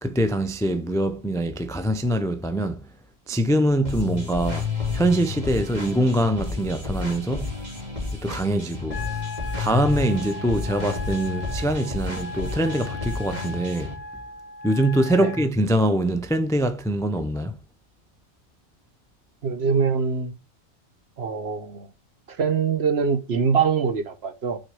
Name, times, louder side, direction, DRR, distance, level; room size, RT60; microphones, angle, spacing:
voice 1, 0.0-2.9 3.3-4.7 4.9-7.6 8.1-9.2 9.6-14.0 14.6-17.6, right 1 dB, 5° left, 0.3 m, -24 dB
sound 1, 3.8-13.9, left 4 dB, 35° right, 2.6 m, -31 dB
Wind instrument woodwind instrument, 8.9-15.5, left 2 dB, 60° left, 1.2 m, -38 dB
voice 2, 19.4-20.3 21.2-21.9 22.3-24.6, right 6 dB, 60° right, 1.2 m, -23 dB
6.4 x 4.2 x 6.3 m
omnidirectional pair, 1.2 m